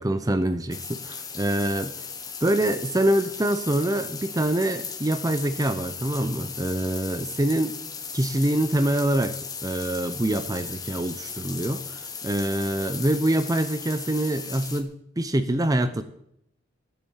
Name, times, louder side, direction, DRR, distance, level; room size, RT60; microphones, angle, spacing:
voice 1, 0.0-2.1 2.4-7.7 8.1-16.0, right 1 dB, 20° right, 10 dB, 0.6 m, -25 dB
sound 1, 0.7-14.8, left 6 dB, 20° left, 1.3 m, -37 dB
15.0 x 8.5 x 7.3 m, 0.76 s
head